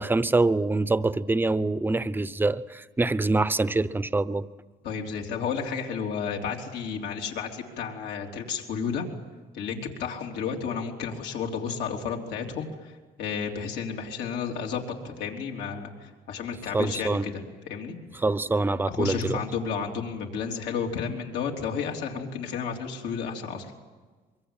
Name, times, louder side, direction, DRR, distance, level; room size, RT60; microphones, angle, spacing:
voice 1, 0.0-4.5 16.7-17.2 18.2-19.4, right 2 dB, 10° right, 15 dB, 0.8 m, -25 dB
voice 2, 4.8-9.1 9.5-18.2 18.9-23.7, left 6 dB, 80° left, 1 dB, 3.6 m, -32 dB
24.0 x 24.0 x 9.1 m, 1.3 s
cardioid pair, 110°, 17 cm